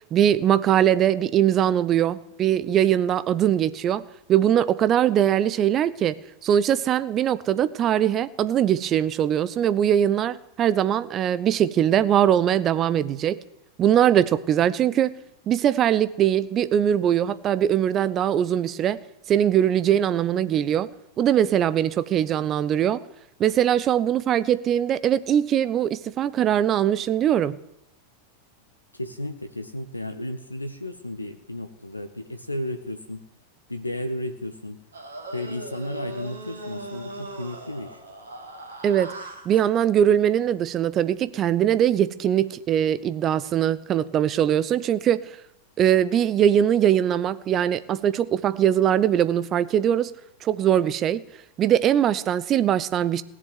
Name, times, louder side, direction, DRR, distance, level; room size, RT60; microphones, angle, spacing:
voice 1, 0.1-4.0 4.3-13.4 13.8-15.1 15.5-19.0 19.3-20.9 21.2-23.0 23.4-27.6 38.8-39.1 39.5-45.2 45.8-50.1 50.4-51.2 51.6-53.2, right 10 dB, 30° right, 0.7 m, -21 dB
voice 2, 28.9-33.2 33.7-34.8 35.3-38.0, left 1 dB, 85° left, 0.9 m, -33 dB
sound 1, 34.9-39.6, right 2 dB, 70° right, 3.2 m, -39 dB
17.0 x 7.6 x 9.5 m
figure-of-eight pair, 90°, 0 cm